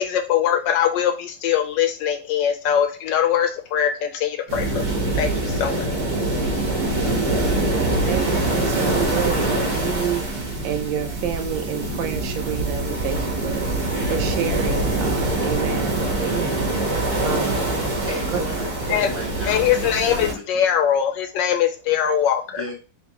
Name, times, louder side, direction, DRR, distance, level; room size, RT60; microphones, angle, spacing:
voice 1, 0.0-5.9 18.9-19.1 19.4-22.6, left 9 dB, 75° left, 6 dB, 1.2 m, -22 dB
sound 1, 4.5-20.3, right 2 dB, 60° right, 1.5 m, -24 dB
voice 2, 8.1-16.7 17.2-17.6 18.3-18.4, right 9 dB, 80° right, 6 dB, 1.3 m, -29 dB
voice 3, 18.1-20.4 22.5-22.7, equal, 10° right, -4 dB, 1.1 m, -34 dB
3.7 x 3.1 x 3.5 m, 0.34 s
omnidirectional pair, 2.1 m